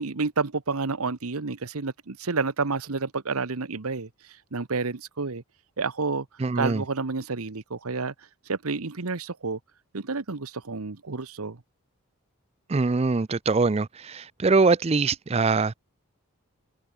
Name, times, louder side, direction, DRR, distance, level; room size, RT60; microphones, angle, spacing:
voice 1, 0.0-4.1 4.5-5.4 5.8-6.3 6.6-8.1 8.5-9.6 9.9-11.6, right 4 dB, 80° right, 1.1 m, -29 dB
voice 2, 6.4-6.8 12.7-15.8, right 3 dB, 25° right, 0.4 m, -23 dB
head